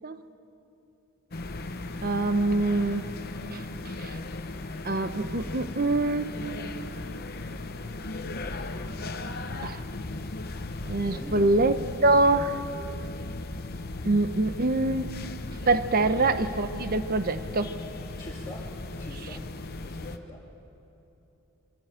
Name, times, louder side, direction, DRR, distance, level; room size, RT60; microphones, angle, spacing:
sound 1, 1.3-20.2, left 2 dB, 45° left, 0.9 m, -37 dB
voice 1, 2.0-3.1 3.5-3.6 4.0-4.2 4.8-6.4 9.6-9.8 10.9-12.6 14.0-15.1 15.7-17.8, right 2 dB, 40° right, 11 dB, 0.9 m, -25 dB
voice 2, 11.1-11.5 16.0-16.3 18.2-18.6 19.0-19.4 19.8-20.4, left 1 dB, 20° left, -7 dB, 2.5 m, -43 dB
24.0 x 15.0 x 9.0 m, 3.0 s
head